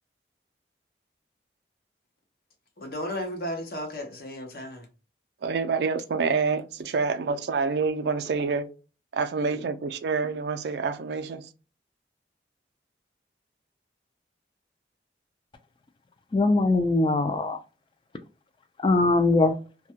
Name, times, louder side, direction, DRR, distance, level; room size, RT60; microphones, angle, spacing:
voice 1, 2.8-4.9, left 1 dB, 55° left, 0.6 m, -34 dB
voice 2, 5.4-8.7 9.1-11.5, right 4 dB, 75° right, 0.4 m, -27 dB
voice 3, 16.3-17.6 18.8-19.6, left 2 dB, 25° left, 0.3 m, -21 dB
2.2 x 2.1 x 2.7 m
head